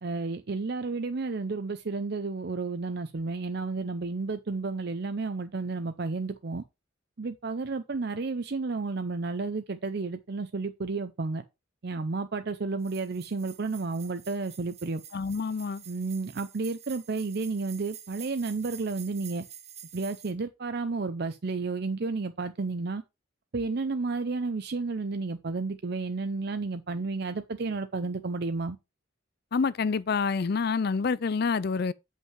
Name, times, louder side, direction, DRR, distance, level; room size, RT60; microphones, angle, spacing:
voice 1, 0.0-6.6 7.2-11.4 11.8-15.0 15.9-19.4 19.9-23.0 23.5-28.8, right 3 dB, 50° right, 0.5 m, -32 dB
sound 1, 12.8-20.3, right 9 dB, 30° right, 1.1 m, -48 dB
voice 2, 15.1-15.8 29.5-31.9, left 5 dB, 50° left, 0.4 m, -27 dB
7.6 x 5.5 x 4.6 m
head